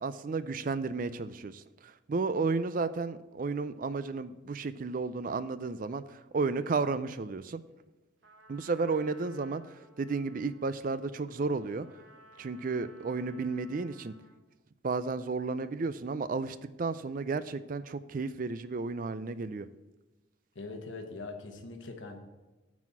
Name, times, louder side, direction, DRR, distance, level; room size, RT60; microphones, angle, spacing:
voice 1, 0.0-7.6 8.5-11.9 12.4-14.1 14.8-19.7, right 4 dB, 45° right, 14 dB, 0.4 m, -33 dB
Trumpet, 8.2-14.4, right 1 dB, 70° right, 1.5 m, -58 dB
voice 2, 20.5-22.2, left 3 dB, 75° left, 4 dB, 1.1 m, -42 dB
8.9 x 4.2 x 7.1 m, 1.1 s
head